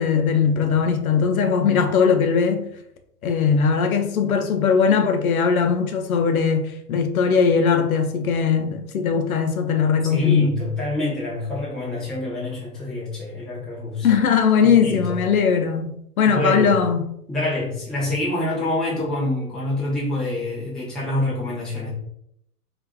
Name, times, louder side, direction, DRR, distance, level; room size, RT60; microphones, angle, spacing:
voice 1, 0.0-2.7 3.2-10.6 14.0-17.0, left 6 dB, 65° left, 0.6 m, -19 dB
voice 2, 10.1-14.1 14.6-15.2 16.3-16.7 17.3-21.9, left 1 dB, ahead, 0.5 m, -26 dB
4.3 x 2.5 x 2.2 m
figure-of-eight pair, 100°, 46 cm